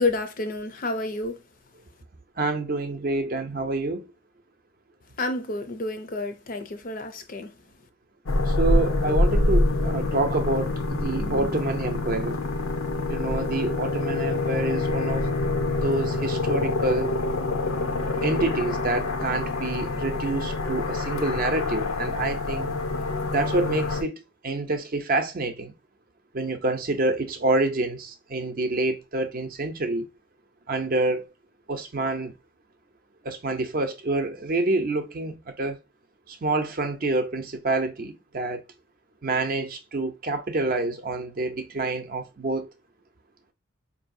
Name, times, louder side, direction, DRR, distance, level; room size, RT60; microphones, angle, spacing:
voice 1, 0.0-1.4 5.2-7.6, left 2 dB, 40° left, 0.5 m, -29 dB
voice 2, 2.4-4.1 8.4-12.4 13.1-15.3 15.8-17.1 18.2-22.7 23.3-25.7 26.3-30.1 30.7-31.3 31.7-32.3 33.2-35.8 36.3-38.6 39.2-42.7, right 2 dB, 45° right, 0.5 m, -27 dB
sound 1, 8.3-24.0, left 2 dB, 80° left, 0.6 m, -26 dB
4.7 x 2.7 x 2.6 m
head